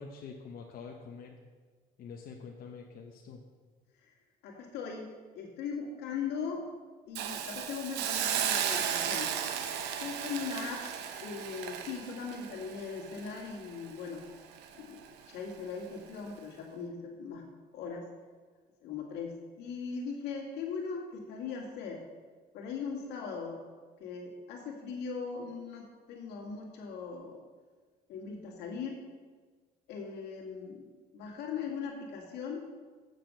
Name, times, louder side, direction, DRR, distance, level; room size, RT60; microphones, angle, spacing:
voice 1, 0.0-1.4 2.0-3.4, left 5 dB, 60° left, 0 dB, 1.0 m, -46 dB
voice 2, 4.4-6.6 7.1-9.3 10.0-10.8 11.2-14.2 14.7-15.0 15.3-17.4 17.7-18.0 18.8-22.0 22.5-23.6 24.0-27.4 28.1-29.0 29.9-30.8 31.1-32.6, left 5 dB, 85° left, 0 dB, 2.1 m, -39 dB
Hiss, 7.2-14.2 14.6-14.7, right 9 dB, 90° right, 0.8 m, -35 dB
7.9 x 6.7 x 6.7 m, 1.4 s
cardioid pair, 110°, 17 cm